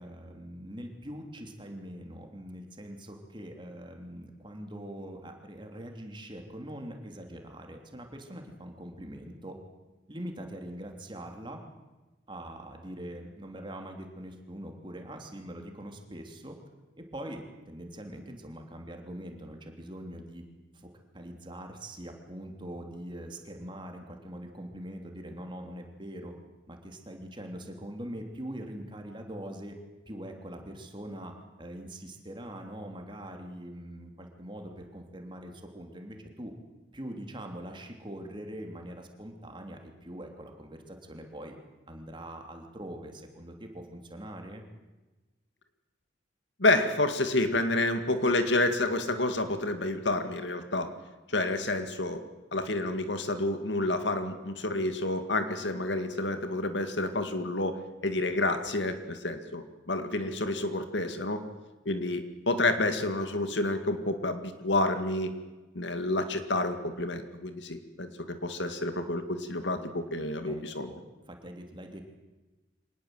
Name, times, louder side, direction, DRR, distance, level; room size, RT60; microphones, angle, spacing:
voice 1, 0.0-9.6 10.1-11.6 12.3-16.6 16.9-20.4 20.7-20.9 21.1-26.3 26.7-29.7 30.1-31.3 31.6-36.5 36.9-41.5 41.9-44.6 70.5-71.0 71.3-72.0, right 1 dB, 25° right, 3 dB, 3.1 m, -43 dB
voice 2, 46.6-50.9 51.3-52.2 52.5-61.4 61.9-65.3 65.7-70.9, left 2 dB, 70° left, 8 dB, 2.1 m, -29 dB
25.0 x 19.5 x 7.9 m, 1.2 s
head